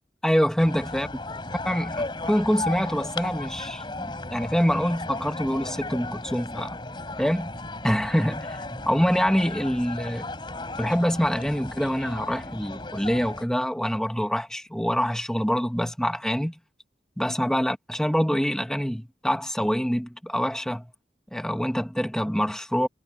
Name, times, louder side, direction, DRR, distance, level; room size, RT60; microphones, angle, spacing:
voice 1, 0.2-1.1 1.6-6.8 7.2-7.5 7.8-8.6 8.9-10.3 10.8-16.6 17.2-20.9 21.3-22.9, equal, 5° left, 1.4 m, -25 dB
sound 1, 0.6-13.4, left 2 dB, 25° left, 4.5 m, -35 dB
head